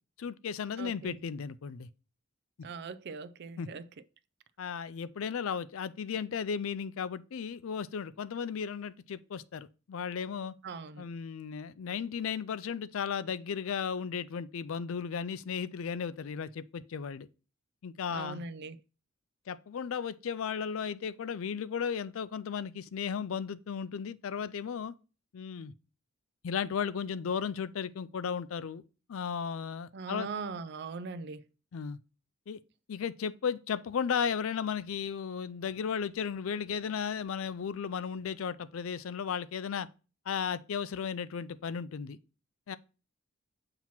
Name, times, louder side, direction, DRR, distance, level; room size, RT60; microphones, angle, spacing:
voice 1, 0.2-1.9 3.6-3.7 4.6-10.5 11.0-17.3 17.8-18.4 19.5-24.9 25.3-25.7 26.4-28.8 29.1-30.3 31.7-32.0 32.5-32.6 32.9-39.9 40.3-42.2 42.7-42.8, left 7 dB, 70° left, 0.4 m, -35 dB
voice 2, 0.8-1.2 2.6-3.9 10.6-11.0 18.1-18.8 29.9-31.4, right 4 dB, 50° right, 0.4 m, -40 dB
7.3 x 2.9 x 5.8 m
head